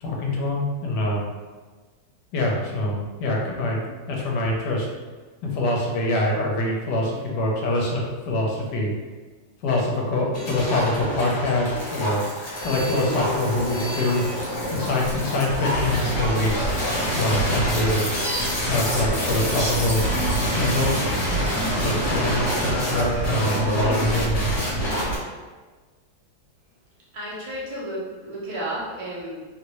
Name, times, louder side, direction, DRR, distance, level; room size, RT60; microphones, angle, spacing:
voice 1, 0.0-1.2 2.3-4.9 5.4-8.9 9.6-12.2 12.6-14.2 14.7-16.6 17.1-18.2 18.7-20.0 20.6-21.5 21.8-24.5, left 1 dB, 70° left, -2 dB, 1.2 m, -25 dB
sound 1, 10.3-25.2, equal, 45° left, 1.2 m, -26 dB
voice 2, 27.1-29.4, right 1 dB, 35° right, -8 dB, 0.5 m, -32 dB
3.1 x 2.5 x 3.0 m, 1.3 s
omnidirectional pair, 2.0 m